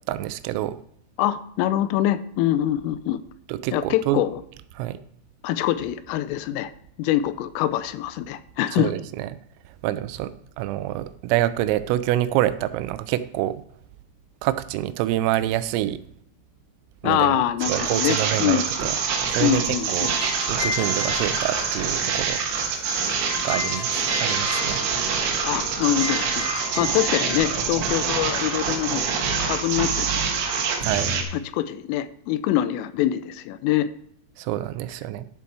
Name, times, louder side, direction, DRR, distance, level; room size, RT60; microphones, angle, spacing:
voice 1, 0.1-0.8 3.5-4.2 4.8-5.0 8.7-9.3 9.8-13.6 14.4-16.0 17.0-19.0 19.3-20.1 20.5-22.8 23.4-24.8 30.8-31.2 34.4-35.3, right 14 dB, 90° right, 13 dB, 3.3 m, -27 dB
voice 2, 1.2-3.2 3.7-4.4 5.4-6.7 7.0-8.9 17.0-18.7 19.4-20.1 25.4-30.4 31.3-33.9, left 12 dB, 85° left, 13 dB, 3.2 m, -24 dB
sound 1, 17.6-31.2, right 6 dB, 70° right, 3.3 m, -25 dB
sound 2, 19.8-30.2, left 4 dB, 60° left, 2.1 m, -35 dB
11.5 x 7.1 x 4.6 m, 0.67 s
omnidirectional pair, 5.8 m